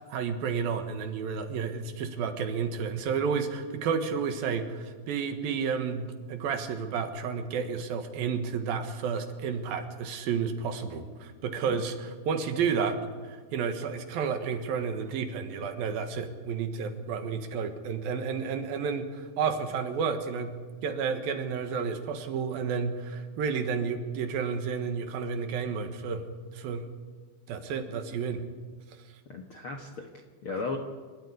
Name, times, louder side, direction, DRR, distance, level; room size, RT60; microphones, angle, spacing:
voice 1, 0.1-20.5 20.8-26.2 26.5-26.8 27.5-28.4, right 6 dB, 75° right, 7 dB, 3.3 m, -31 dB
voice 2, 29.3-30.8, left 3 dB, 60° left, 3 dB, 1.4 m, -36 dB
26.5 x 13.5 x 9.9 m, 1.5 s
omnidirectional pair, 4.3 m